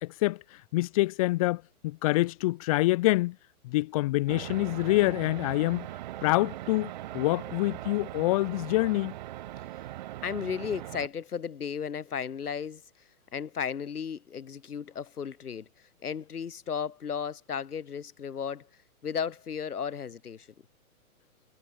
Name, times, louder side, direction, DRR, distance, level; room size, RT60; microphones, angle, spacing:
voice 1, 0.0-3.4 3.6-5.9 6.2-9.1, left 19 dB, 25° left, 2.1 m, -26 dB
sound 1, 4.3-11.1, right 15 dB, 30° right, 2.4 m, -40 dB
voice 2, 10.2-12.8 13.3-15.7 16.0-18.7 19.0-20.5, left 7 dB, 80° left, 4.9 m, -34 dB
hypercardioid pair, 170°, 45 cm